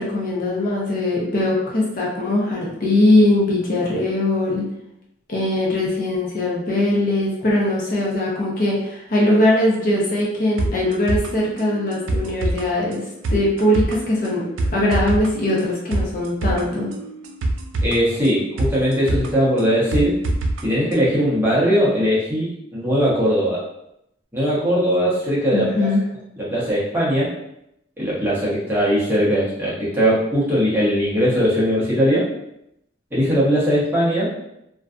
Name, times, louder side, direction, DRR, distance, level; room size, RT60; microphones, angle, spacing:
voice 1, 0.0-4.6 5.3-13.0 13.3-14.5 14.7-16.9 25.5-26.0, left 1 dB, 45° left, -4 dB, 0.5 m, -20 dB
sound 1, 10.6-20.6 20.9-21.0, right 2 dB, 85° right, 0.3 m, -26 dB
voice 2, 17.8-20.2 20.6-23.6 24.3-25.9 26.4-27.3 28.0-32.2 33.1-34.3, equal, 10° right, -8 dB, 0.7 m, -19 dB
2.4 x 2.2 x 2.4 m, 0.81 s
head